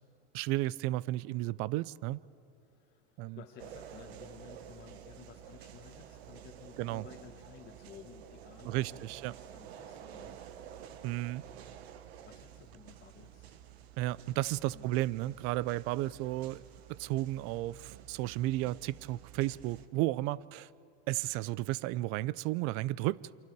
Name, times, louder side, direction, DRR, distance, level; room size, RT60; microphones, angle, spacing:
voice 1, 0.3-2.2 3.2-3.4 6.8-7.1 8.6-9.3 11.0-11.4 14.0-16.6 16.9-20.7 21.1-23.2, right 17 dB, 45° right, 0.5 m, -33 dB
voice 2, 2.6-10.5 11.0-11.1 12.3-13.6 14.7-14.9, left 9 dB, 35° left, 1.4 m, -55 dB
sound 1, 3.6-19.9, right 9 dB, 85° right, 1.2 m, -51 dB
28.0 x 24.5 x 4.7 m
supercardioid pair, 125°, 31 cm